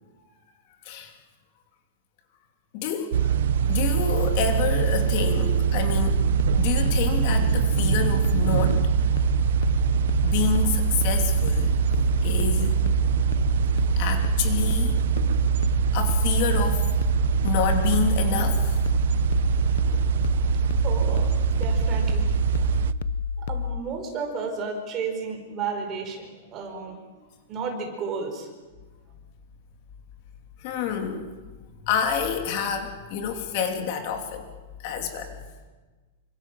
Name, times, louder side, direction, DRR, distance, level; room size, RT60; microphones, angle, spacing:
voice 1, 2.7-3.3 3.7-6.2 6.6-8.8 10.2-11.7 12.2-12.8 14.0-15.0 15.9-16.9 17.4-18.8 19.9-20.0 30.6-31.2 31.8-34.5 34.8-35.4, left 7 dB, 40° left, 5 dB, 2.9 m, -28 dB
sound 1, 3.1-22.9, right 8 dB, 65° right, 0.9 m, -23 dB
sound 2, 6.0-23.8, left 6 dB, 60° left, 0.8 m, -30 dB
voice 2, 20.8-22.3 22.8-22.9 23.5-27.0 27.5-28.5, right 5 dB, 20° right, 3 dB, 5.0 m, -32 dB
28.5 x 25.5 x 7.6 m, 1.3 s
supercardioid pair, 175°, 0 cm